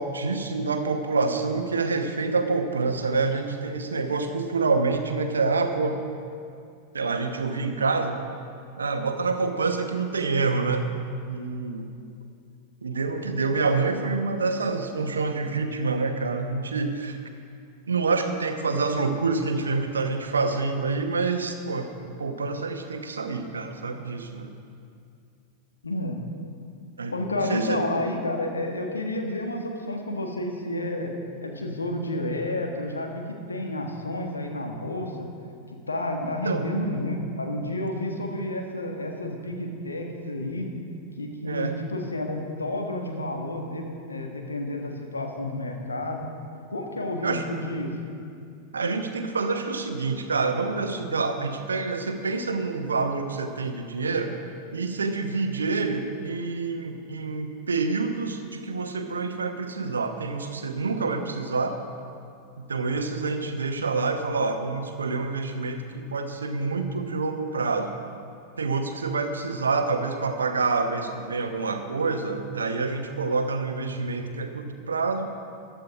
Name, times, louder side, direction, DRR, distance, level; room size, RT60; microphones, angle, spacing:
voice 1, 0.0-6.0 6.9-8.1 8.8-10.9 11.3-12.0 12.8-17.2 17.9-24.5 27.0-27.2 27.5-27.8 36.2-36.6 41.4-41.8 47.2-47.4 48.7-54.3 54.7-61.8 62.7-68.0 68.6-75.3, right 4 dB, 75° right, 6 dB, 1.0 m, -27 dB
voice 2, 25.8-26.2 27.1-31.1 31.4-35.3 35.9-40.7 41.2-46.3 46.7-47.9, left 1 dB, 80° left, 2 dB, 1.6 m, -30 dB
14.5 x 10.5 x 4.9 m, 2.4 s
figure-of-eight pair, 90°, 0 cm